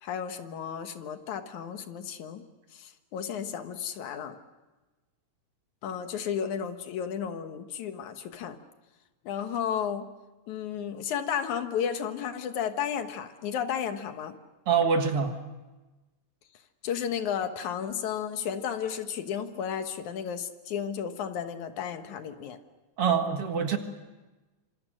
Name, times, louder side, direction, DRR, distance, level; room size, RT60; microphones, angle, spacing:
voice 1, 0.0-2.4 2.7-4.4 5.8-8.6 9.3-10.1 10.5-14.4 16.8-22.6, left 8 dB, 85° left, 8 dB, 2.8 m, -33 dB
voice 2, 14.7-15.4 23.0-23.8, right 6 dB, 55° right, 6 dB, 2.5 m, -25 dB
26.5 x 26.0 x 6.4 m, 1.2 s
omnidirectional pair, 3.3 m